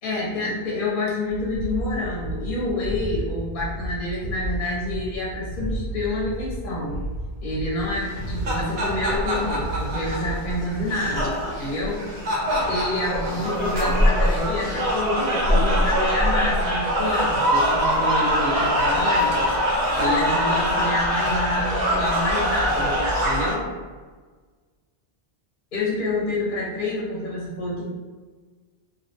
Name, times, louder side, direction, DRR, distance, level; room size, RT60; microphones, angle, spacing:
voice 1, 0.0-7.0 7.4-12.0 12.7-23.7 25.7-27.9, left 2 dB, 55° left, -5 dB, 0.7 m, -28 dB
sound 1, 1.3-10.7, right 1 dB, 85° left, 0.9 m, -32 dB
sound 2, 8.1-23.5, equal, 50° right, 0.6 m, -23 dB
2.4 x 2.1 x 2.7 m, 1.4 s
omnidirectional pair, 1.1 m